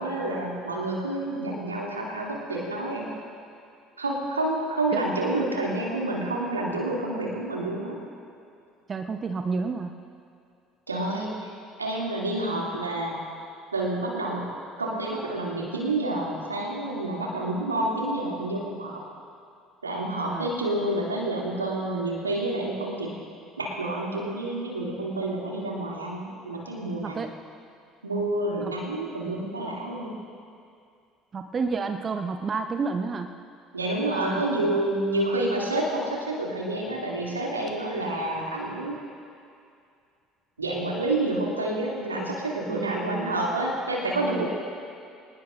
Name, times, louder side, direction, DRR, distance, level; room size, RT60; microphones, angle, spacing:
voice 1, 0.0-3.1 4.0-8.0 10.9-11.5 11.8-13.2 13.7-14.5 14.8-19.0 19.8-23.1 23.6-27.3 28.0-30.1 33.7-39.0 40.6-44.5, right 2 dB, 85° right, -3 dB, 2.6 m, -28 dB
voice 2, 8.9-9.9 20.2-20.5 26.9-27.3 28.6-28.7 31.3-33.3 34.0-34.8 42.7-43.4 44.2-44.5, right 4 dB, 35° right, 6 dB, 0.9 m, -31 dB
25.5 x 19.0 x 2.6 m, 2.4 s
figure-of-eight pair, 60°, 0 cm